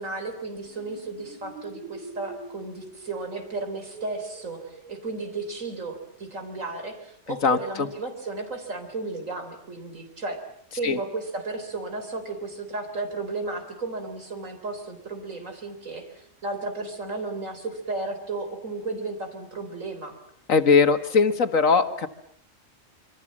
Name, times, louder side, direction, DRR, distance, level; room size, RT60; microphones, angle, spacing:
voice 1, 0.0-10.4 10.8-20.2, right 3 dB, 85° right, 6 dB, 4.3 m, -34 dB
sound 1, 0.5-5.9, right 3 dB, 30° right, 8.1 m, -45 dB
voice 2, 7.3-7.9 10.8-11.0 20.5-22.1, left 5 dB, 85° left, 9 dB, 2.0 m, -20 dB
27.0 x 25.0 x 7.4 m, 0.64 s
omnidirectional pair, 1.3 m